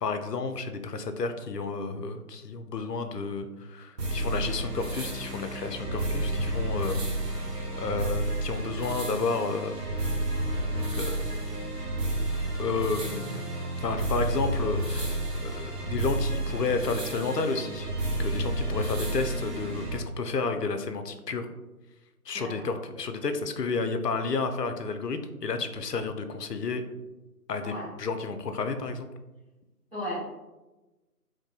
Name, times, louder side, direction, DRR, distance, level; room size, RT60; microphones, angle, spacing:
voice 1, 0.0-7.0 7.3-10.1 10.9-11.2 12.6-13.5 13.8-17.9 18.2-21.5 22.3-26.8 27.5-29.1, left 4 dB, 85° left, 8 dB, 0.6 m, -31 dB
sound 1, 4.0-20.0, right 1 dB, 80° right, 0.8 m, -31 dB
voice 2, 22.3-22.7 27.6-27.8 29.9-30.2, left 1 dB, 40° right, -9 dB, 0.9 m, -35 dB
3.5 x 2.6 x 2.2 m, 1.1 s
figure-of-eight pair, 165°, 47 cm